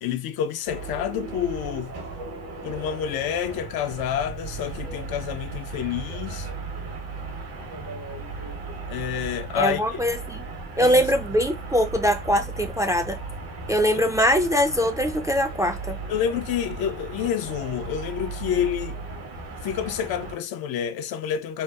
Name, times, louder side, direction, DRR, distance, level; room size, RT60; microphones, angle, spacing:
voice 1, 0.0-1.9 2.6-6.5 8.9-10.0 10.8-11.0 13.9-14.1 16.1-19.0 19.6-21.6, left 9 dB, 70° left, 0.5 m, -28 dB
sound 1, 0.7-20.4, right 3 dB, 70° right, 1.1 m, -36 dB
voice 2, 9.6-10.4 10.8-13.2 13.7-16.0, equal, 10° right, 0.3 m, -22 dB
2.8 x 2.1 x 2.3 m
hypercardioid pair, 50°, 39 cm